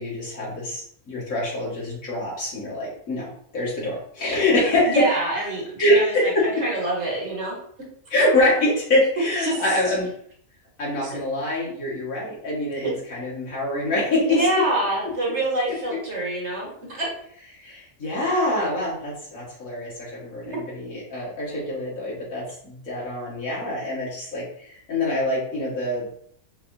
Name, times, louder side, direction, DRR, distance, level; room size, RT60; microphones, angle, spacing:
voice 1, 0.0-5.1 5.8-6.6 8.1-10.1 10.8-14.5 15.9-16.0 17.6-26.1, left 1 dB, 65° left, -6 dB, 2.0 m, -25 dB
voice 2, 4.9-7.6 9.4-9.6 11.0-11.2 12.8-12.9 14.3-17.1, right 1 dB, 50° right, -3 dB, 1.6 m, -26 dB
5.1 x 2.9 x 2.6 m, 0.64 s
omnidirectional pair, 1.6 m